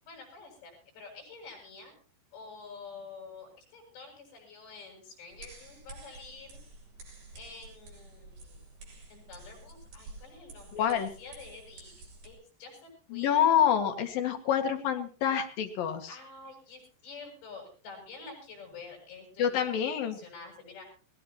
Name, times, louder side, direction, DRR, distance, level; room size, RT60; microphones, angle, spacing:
voice 1, 0.1-1.9 2.3-6.6 7.3-8.6 9.1-10.9 11.2-11.9 12.2-13.4 16.1-20.8, left 4 dB, 85° left, 2 dB, 10.5 m, -48 dB
sound 1, 5.3-12.3, right 2 dB, 75° right, 8.5 m, -50 dB
voice 2, 10.7-11.1 13.1-16.1 19.4-20.2, left 9 dB, 60° left, 5 dB, 3.5 m, -27 dB
21.0 x 20.0 x 3.0 m, 0.38 s
omnidirectional pair, 4.9 m